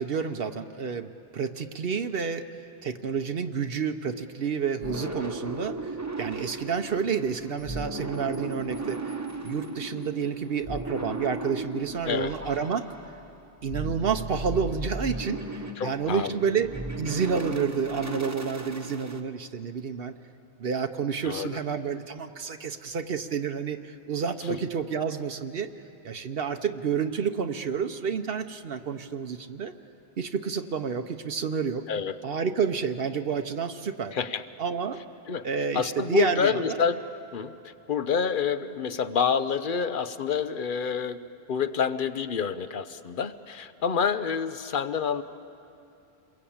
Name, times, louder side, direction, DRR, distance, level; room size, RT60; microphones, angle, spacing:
voice 1, 0.0-2.5 2.8-9.2 9.4-13.1 13.6-20.2 20.6-25.7 26.0-29.7 30.2-31.9 32.2-34.2 34.6-35.0 35.4-36.8, right 6 dB, 70° right, 8 dB, 1.0 m, -29 dB
sound 1, 4.8-19.2, right 2 dB, 15° right, 1.0 m, -36 dB
voice 2, 15.8-16.4 21.2-21.5 31.9-32.2 34.1-34.4 35.3-35.4 35.7-37.0 37.3-41.2 41.5-45.2, left 6 dB, 55° left, 12 dB, 1.0 m, -28 dB
28.0 x 22.0 x 8.6 m, 2.7 s
omnidirectional pair, 1.0 m